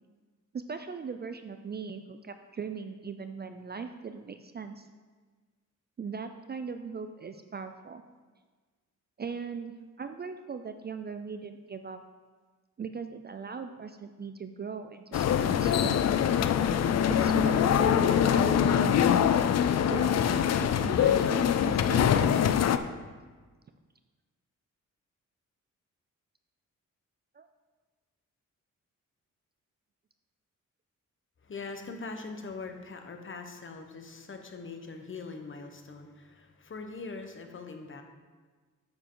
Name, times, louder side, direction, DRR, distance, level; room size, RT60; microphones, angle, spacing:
voice 1, 0.5-4.9 6.0-8.0 9.2-12.0 12.8-16.2 17.2-19.2 19.9-22.6 27.3-27.5, right 5 dB, 35° right, 8 dB, 0.4 m, -39 dB
sound 1, 15.1-22.8, left 9 dB, 55° left, 0.5 m, -24 dB
voice 2, 31.4-38.0, left 4 dB, 40° left, 5 dB, 1.0 m, -42 dB
8.8 x 7.0 x 3.9 m, 1.4 s
wide cardioid pair, 110°, 31 cm